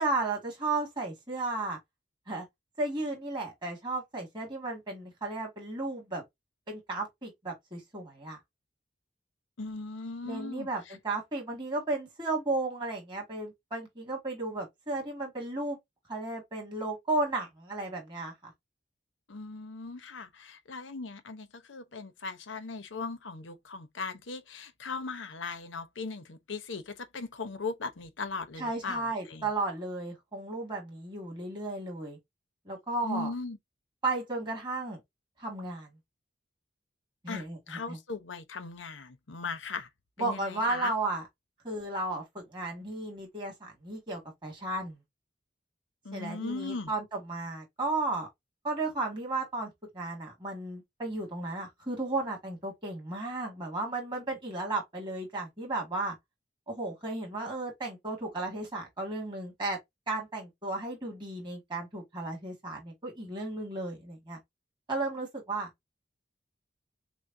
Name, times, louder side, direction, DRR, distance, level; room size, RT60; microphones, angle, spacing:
voice 1, 0.0-1.8 2.3-2.5 2.8-6.2 6.7-8.4 10.2-15.8 16.1-18.5 28.6-32.2 32.7-33.3 34.0-35.0 35.4-35.9 37.2-38.0 40.2-41.3 41.6-45.0 46.1-48.3 48.6-56.2 56.7-59.8 60.1-64.4 64.9-65.7, right 2 dB, 25° right, 1.8 m, -34 dB
voice 2, 9.6-11.0 19.3-29.5 33.0-33.6 37.3-39.9 40.2-40.9 46.0-46.9, left 4 dB, 90° left, 0.9 m, -38 dB
6.2 x 2.2 x 2.6 m
head